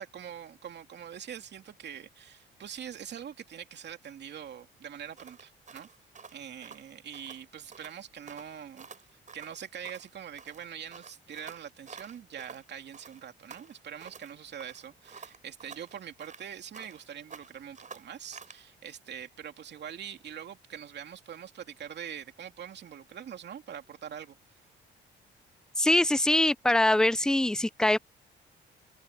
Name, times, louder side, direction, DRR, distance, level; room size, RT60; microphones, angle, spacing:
voice 1, 0.0-5.9 6.3-8.9 9.3-24.4, right 8 dB, 60° right, 2.7 m, -43 dB
sound 1, 5.2-7.4 7.7-8.0 8.3-10.1 10.4-12.7 12.9-14.3 14.6-17.1 17.3-18.6, right 5 dB, 40° right, 6.2 m, -49 dB
voice 2, 25.8-28.0, left 1 dB, 5° left, 0.4 m, -23 dB
cardioid pair, 90°, 20 cm